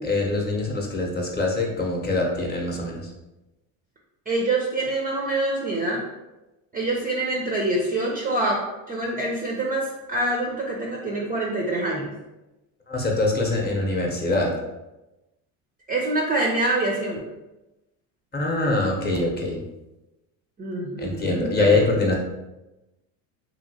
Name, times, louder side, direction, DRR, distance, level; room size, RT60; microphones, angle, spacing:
voice 1, 0.0-3.1 12.9-14.5 18.3-19.6 21.0-22.2, left 2 dB, 20° left, -1 dB, 0.7 m, -24 dB
voice 2, 4.3-6.0 6.7-8.6 8.9-12.1 15.9-17.2 20.6-21.9, right 2 dB, 20° right, -2 dB, 0.4 m, -25 dB
2.8 x 2.8 x 2.7 m, 1.0 s
supercardioid pair, 90°, 46 cm